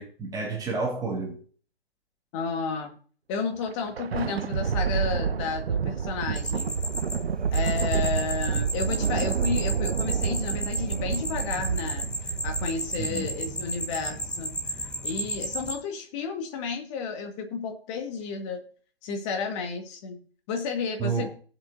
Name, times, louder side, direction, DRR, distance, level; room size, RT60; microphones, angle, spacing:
voice 1, 0.0-1.4 13.0-13.3 21.0-21.3, right 4 dB, 10° right, 2.2 m, -30 dB
voice 2, 2.3-2.9 3.3-6.8 7.5-18.6 19.0-20.2 20.5-21.3, left 5 dB, 30° left, 1.9 m, -32 dB
Thunder, 3.5-14.3, right 7 dB, 85° right, 0.5 m, -29 dB
sound 1, 6.4-15.7, equal, 5° left, 1.0 m, -34 dB
17.5 x 7.7 x 2.7 m
figure-of-eight pair, 130°, 30 cm